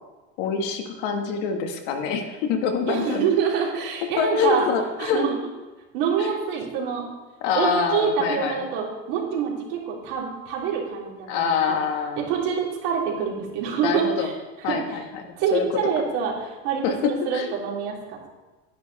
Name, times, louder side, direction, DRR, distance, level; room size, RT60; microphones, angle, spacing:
voice 1, 0.4-3.3 4.2-5.2 6.2-6.3 7.4-8.6 11.3-12.3 13.8-14.3 14.6-15.2 15.5-15.7 16.8-17.5, left 6 dB, 70° left, 4 dB, 1.7 m, -25 dB
voice 2, 2.9-4.7 5.0-5.4 5.9-7.1 7.5-11.8 12.2-14.3 14.6-14.8 15.4-18.3, right 7 dB, 75° right, -3 dB, 3.4 m, -26 dB
10.5 x 10.5 x 4.1 m, 1.2 s
cardioid pair, 140°, 31 cm